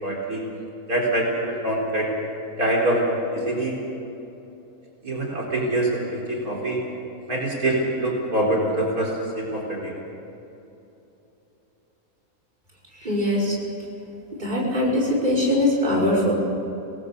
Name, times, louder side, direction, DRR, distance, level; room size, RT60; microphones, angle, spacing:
voice 1, 0.0-0.4 0.9-2.1 2.6-3.7 5.0-6.8 7.3-9.9, right 1 dB, 75° right, -2 dB, 4.6 m, -24 dB
voice 2, 13.0-13.5 14.3-16.3, left 1 dB, 30° right, -3 dB, 5.6 m, -22 dB
26.5 x 19.5 x 6.8 m, 2.9 s
omnidirectional pair, 1.5 m